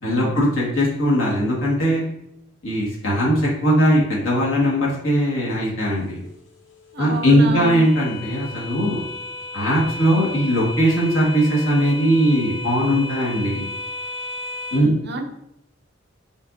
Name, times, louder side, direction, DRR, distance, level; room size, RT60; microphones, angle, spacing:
voice 1, 0.0-2.0 2.6-6.2 7.0-9.0 9.5-13.6 14.7-14.9, equal, 90° left, -4 dB, 1.7 m, -19 dB
sound 1, 5.8-14.8, left 2 dB, 70° left, 0.8 m, -34 dB
voice 2, 6.9-7.8 14.8-15.3, right 2 dB, 55° right, 4 dB, 0.6 m, -30 dB
5.3 x 3.6 x 2.6 m, 0.80 s
head